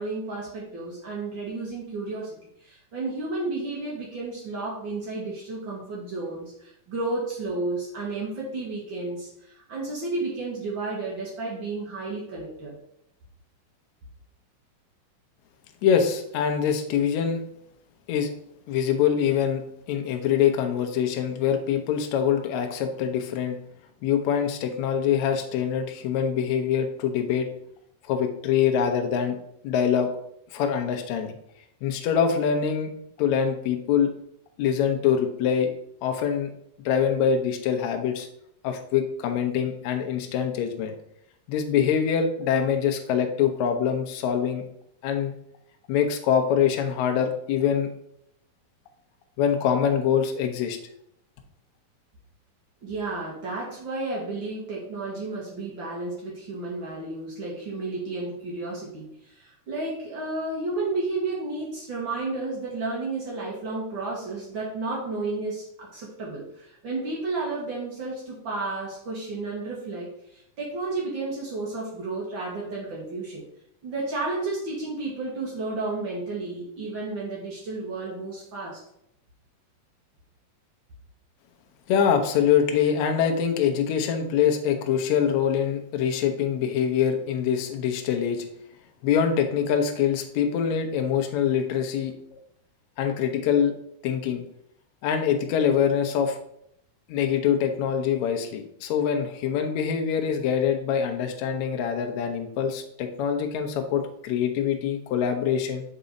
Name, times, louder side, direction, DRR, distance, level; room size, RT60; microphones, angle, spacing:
voice 1, 0.0-12.8 52.8-73.4 73.8-78.8, right 3 dB, 80° right, -4 dB, 1.0 m, -32 dB
voice 2, 15.8-17.4 18.1-18.3 18.7-19.6 19.9-23.6 24.0-27.5 28.0-29.4 29.6-30.1 30.5-31.3 31.8-32.9 33.2-34.1 34.6-35.7 36.0-36.5 36.8-38.3 38.6-40.9 41.5-44.6 45.0-45.3 45.9-47.9 49.4-50.8 81.9-88.4 89.0-92.4 93.0-93.7 94.0-94.4 95.0-96.4 97.1-105.8, left 8 dB, 85° left, 5 dB, 1.6 m, -24 dB
6.7 x 4.1 x 5.1 m, 0.73 s
omnidirectional pair, 4.4 m